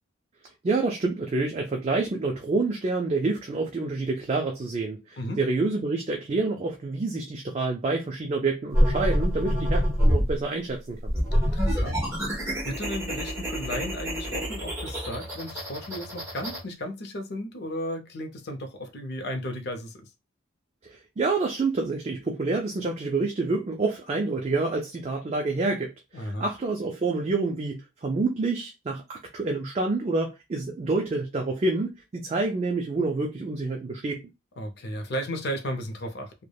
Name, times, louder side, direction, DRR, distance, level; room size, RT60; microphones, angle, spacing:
voice 1, 0.6-11.1 20.8-34.2, right 3 dB, 30° right, 0.3 m, -28 dB
sound 1, 8.7-10.3 11.0-16.6, equal, 15° right, 0.9 m, -26 dB
voice 2, 11.4-12.0 12.3-20.1 26.1-26.5 34.6-36.3, equal, 55° left, 0.5 m, -34 dB
3.2 x 2.1 x 2.2 m
head